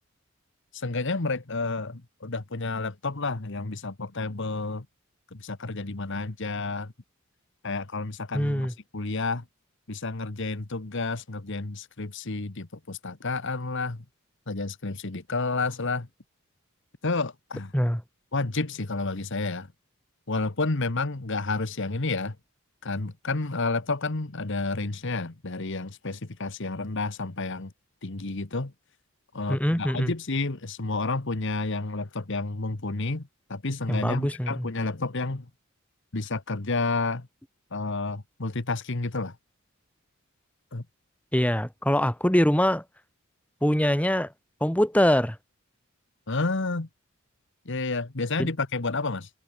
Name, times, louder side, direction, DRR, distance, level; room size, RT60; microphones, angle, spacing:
voice 1, 0.7-4.8 5.3-6.9 7.6-8.7 8.9-9.4 9.9-14.0 14.5-16.1 17.0-17.7 18.3-19.7 20.3-22.4 22.8-27.7 28.0-28.7 29.3-35.5 36.1-37.3 37.7-39.4 40.7-40.8 46.3-46.9 47.6-49.3, left 3 dB, 60° left, 1.4 m, -30 dB
voice 2, 8.3-8.7 17.7-18.0 29.5-30.1 33.9-34.7 41.3-42.8 43.6-44.3 44.6-45.4 48.4-48.5, equal, 5° left, 2.2 m, -23 dB
head